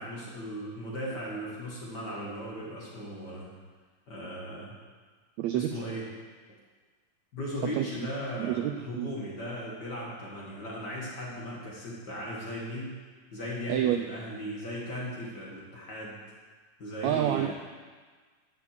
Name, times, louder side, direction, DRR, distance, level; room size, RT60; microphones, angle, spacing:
voice 1, 0.0-3.5 4.1-4.7 5.5-6.1 7.3-13.0 13.3-16.2 16.8-17.5, equal, 35° left, -4 dB, 2.2 m, -37 dB
voice 2, 5.4-5.8 7.7-7.9 8.4-9.1 13.7-14.0 17.0-17.5, right 12 dB, 80° right, 7 dB, 1.6 m, -28 dB
12.0 x 6.0 x 7.6 m, 1.5 s
omnidirectional pair, 3.6 m